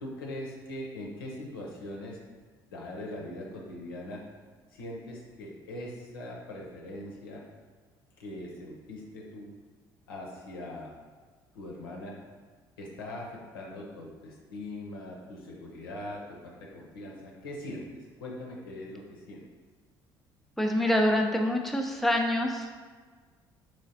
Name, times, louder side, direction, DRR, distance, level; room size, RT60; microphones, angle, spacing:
voice 1, 0.0-2.2 2.7-4.2 4.7-7.4 8.2-9.5 10.1-10.9 11.5-12.2 12.8-19.4, left 1 dB, 85° left, -2 dB, 0.6 m, -41 dB
voice 2, 20.6-22.8, left 1 dB, ahead, 1 dB, 0.5 m, -26 dB
3.9 x 3.0 x 2.8 m, 1.5 s
hypercardioid pair, 55°, 12 cm